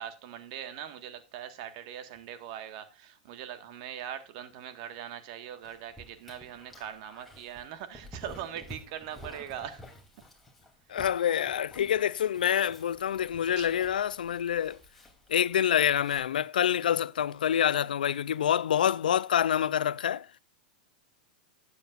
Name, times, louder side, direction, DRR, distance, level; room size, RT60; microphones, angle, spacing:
voice 1, 0.0-9.8 13.5-13.7, right 10 dB, 55° right, 1.6 m, -41 dB
Dog, 5.6-16.2, equal, ahead, 3.1 m, -51 dB
voice 2, 10.9-14.8 15.3-20.3, left 9 dB, 85° left, 0.5 m, -27 dB
12.0 x 8.5 x 2.5 m
hypercardioid pair, 115°, 5 cm